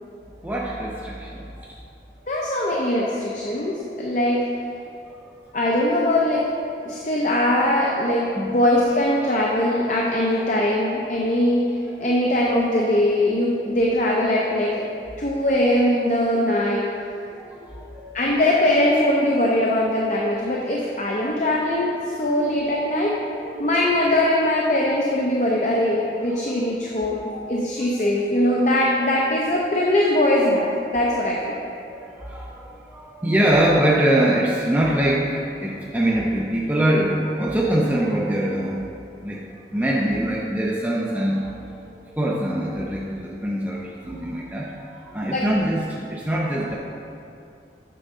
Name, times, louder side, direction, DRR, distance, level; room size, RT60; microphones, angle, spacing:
voice 1, 0.4-1.7 5.1-5.2 8.4-8.5 10.3-10.4 12.0-12.2 17.4-18.1 22.2-22.4 23.3-23.7 26.3-27.0 27.3-27.6 31.8-38.9 39.2-39.4 39.7-41.5 42.1-46.8, right 1 dB, 10° right, -4 dB, 0.5 m, -24 dB
voice 2, 2.3-4.5 5.5-6.5 6.9-11.7 12.0-14.8 15.2-16.8 18.1-23.2 23.6-31.5 45.3-45.4, left 1 dB, 45° left, -3 dB, 0.6 m, -21 dB
7.7 x 6.3 x 3.7 m, 2.6 s
head